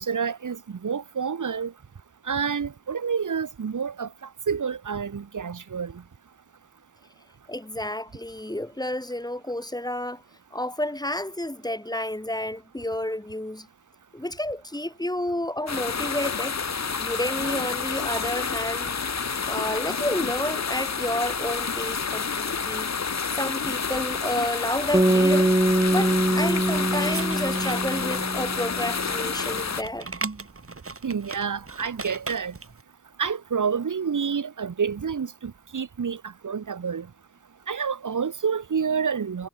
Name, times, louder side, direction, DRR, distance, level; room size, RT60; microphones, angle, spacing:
voice 1, 0.0-1.7 2.3-4.1 4.5-5.9 31.0-32.5 33.2-36.2 36.4-37.1 37.7-39.5, right 6 dB, 80° right, 2.9 m, -28 dB
voice 2, 7.5-10.2 10.5-13.7 14.1-16.6 17.0-18.9 19.5-22.9 23.4-25.5 25.9-30.1, left 1 dB, 15° left, 2.9 m, -30 dB
sound 1, 15.7-29.8, left 5 dB, 60° left, 2.0 m, -29 dB
sound 2, 24.9-29.2, right 1 dB, 15° right, 3.7 m, -23 dB
sound 3, 25.6-32.8, right 3 dB, 45° right, 6.5 m, -40 dB
cardioid pair, 50°, 30 cm